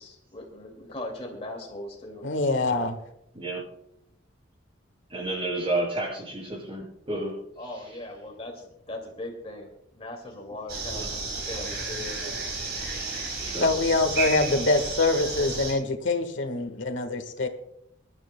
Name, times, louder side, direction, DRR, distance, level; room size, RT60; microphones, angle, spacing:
voice 1, 0.0-2.2 7.6-12.2, left 1 dB, 35° left, 2 dB, 2.2 m, -39 dB
voice 2, 2.2-3.0 13.6-17.5, left 2 dB, 85° left, 8 dB, 1.5 m, -24 dB
voice 3, 3.3-3.6 5.1-7.4 10.9-11.1 13.4-13.7, right 2 dB, 30° right, -1 dB, 6.4 m, -31 dB
sound 1, 10.7-15.7, right 3 dB, 60° right, 4.8 m, -32 dB
25.0 x 12.5 x 2.2 m, 0.78 s
head